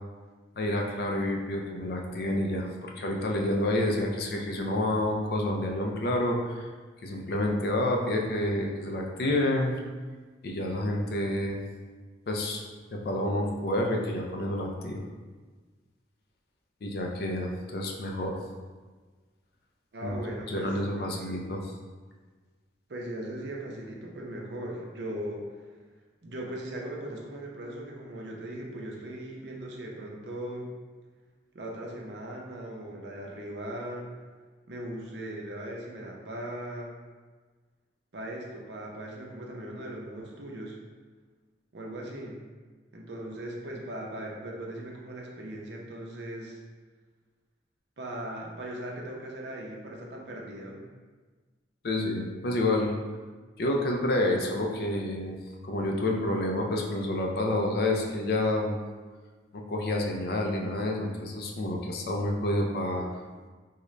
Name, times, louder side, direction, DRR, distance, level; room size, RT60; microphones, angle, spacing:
voice 1, 0.6-6.7 7.0-9.8 10.4-11.6 12.3-12.6 12.9-15.0 16.8-18.4 20.0-20.1 20.5-21.6 51.8-52.9 53.6-55.4 55.6-58.8 59.5-63.1, left 1 dB, 55° left, 1 dB, 0.4 m, -29 dB
voice 2, 19.9-21.4 22.9-25.7 26.2-30.7 31.5-34.1 34.7-37.0 38.1-40.8 41.7-42.4 42.9-46.6 48.0-50.8, right 1 dB, 70° right, -1 dB, 0.6 m, -39 dB
3.7 x 2.1 x 3.1 m, 1.4 s
head